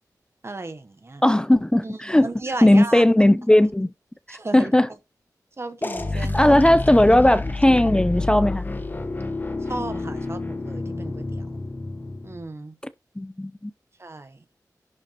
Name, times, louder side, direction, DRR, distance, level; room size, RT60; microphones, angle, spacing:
voice 1, 0.4-1.2 1.8-3.0 4.3-4.7 5.6-6.6 9.6-11.6 12.2-12.8 14.0-14.4, right 2 dB, 40° right, 0.9 m, -35 dB
voice 2, 1.2-2.3 2.6-3.9 4.3-4.9 6.2-8.7 13.2-13.7, left 1 dB, 10° left, 0.4 m, -17 dB
sound 1, 5.8-12.4, left 2 dB, 30° left, 0.9 m, -29 dB
11.0 x 4.3 x 2.9 m
cardioid pair, 55°, 7 cm